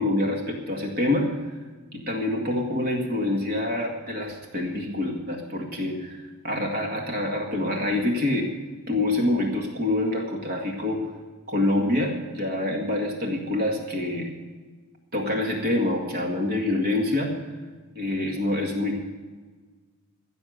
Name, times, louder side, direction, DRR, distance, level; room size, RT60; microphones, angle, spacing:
voice 1, 0.0-1.3 1.9-8.5 8.9-11.1 11.5-14.3 15.1-17.4 18.0-19.0, left 1 dB, 45° right, 1 dB, 2.0 m, -26 dB
15.5 x 7.1 x 7.9 m, 1.4 s
head